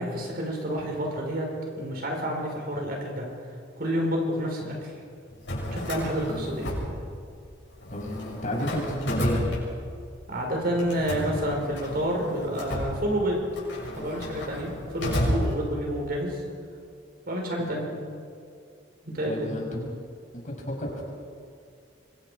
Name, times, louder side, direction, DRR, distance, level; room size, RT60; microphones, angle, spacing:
voice 1, 0.0-1.5 1.8-3.3 3.8-4.9 5.7-6.7 10.3-13.4 13.9-16.4 17.3-17.9 19.0-19.5, equal, 55° right, 0 dB, 5.3 m, -29 dB
Drawer open or close, 5.3-7.5 7.8-10.2 10.8-16.1, left 1 dB, 70° left, 7.2 m, -32 dB
voice 2, 7.9-9.5 17.6-17.8 19.2-19.9 20.3-21.0, left 1 dB, 40° left, -1 dB, 5.8 m, -32 dB
26.0 x 24.0 x 5.2 m, 2.3 s
head